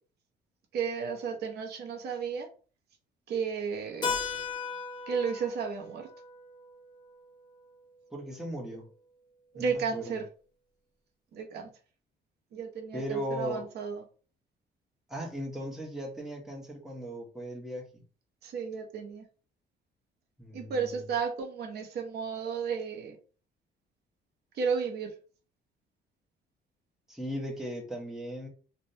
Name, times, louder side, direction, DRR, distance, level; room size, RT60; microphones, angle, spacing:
voice 1, 0.7-2.5 3.3-4.2 5.1-6.1 9.5-10.2 11.3-11.7 12.5-14.0 18.4-19.2 20.5-23.2 24.5-25.1, right 6 dB, 65° right, 3 dB, 0.7 m, -33 dB
Keyboard (musical), 4.0-8.5, left 5 dB, 25° left, 0.7 m, -38 dB
voice 2, 8.1-8.9 9.6-10.2 12.9-13.6 15.1-18.0 20.4-21.0 27.1-28.5, equal, ahead, -1 dB, 0.9 m, -37 dB
3.3 x 2.1 x 2.7 m, 0.38 s
cardioid pair, 125°, 18 cm